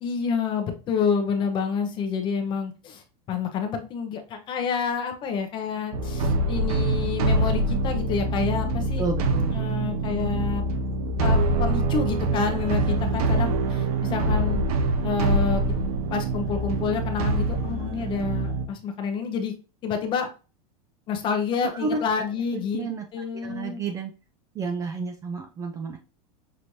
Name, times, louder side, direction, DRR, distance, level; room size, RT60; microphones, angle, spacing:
voice 1, 0.0-3.0 3.3-9.0 9.5-10.6 11.2-14.6 15.0-15.6 16.1-19.5 19.8-20.3 21.1-23.8, left 6 dB, 25° left, 6 dB, 0.8 m, -28 dB
sound 1, 5.9-18.7, right 2 dB, 75° right, 0.8 m, -25 dB
voice 2, 9.0-9.5 21.7-22.3 22.5-23.0 23.3-24.1 24.6-26.0, right 4 dB, 15° right, 4 dB, 0.4 m, -31 dB
5.9 x 3.1 x 2.6 m, 0.32 s
supercardioid pair, 165°, 19 cm